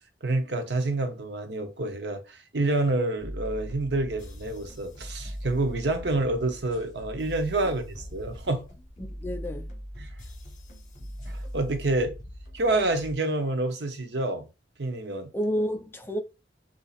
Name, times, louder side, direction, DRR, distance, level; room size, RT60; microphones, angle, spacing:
voice 1, 0.2-8.6 10.0-10.1 11.3-12.1 12.5-14.5 14.8-15.3, right 2 dB, 70° right, 0.8 m, -28 dB
sound 1, 3.2-13.1, equal, 45° left, 1.3 m, -40 dB
voice 2, 9.0-9.7 15.3-16.2, equal, 15° left, 0.4 m, -30 dB
4.0 x 2.7 x 2.4 m
head